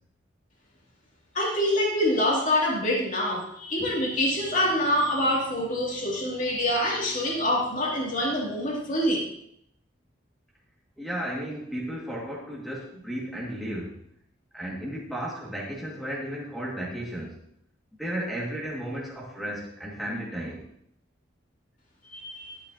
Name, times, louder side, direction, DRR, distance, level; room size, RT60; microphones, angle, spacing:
voice 1, 1.3-9.2 22.1-22.5, left 1 dB, 40° left, -3 dB, 2.6 m, -25 dB
voice 2, 3.8-4.6 5.2-9.0 11.0-13.9 14.5-17.4 18.0-20.7, right 1 dB, ahead, -4 dB, 1.9 m, -36 dB
12.0 x 8.6 x 2.8 m, 0.71 s
head